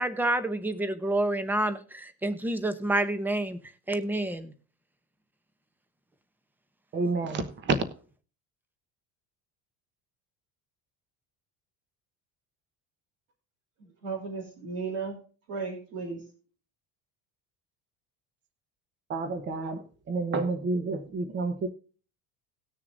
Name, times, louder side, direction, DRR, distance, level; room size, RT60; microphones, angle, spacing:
voice 1, 0.0-3.6 3.9-4.5, right 1 dB, 5° right, 0.7 m, -28 dB
voice 2, 6.9-7.8 19.1-19.8 20.1-21.7, right 3 dB, 30° right, 1.1 m, -29 dB
voice 3, 13.8-15.2 15.5-16.2, right 4 dB, 60° right, 3.1 m, -35 dB
18.5 x 6.6 x 2.6 m
cardioid pair, 165°, 37 cm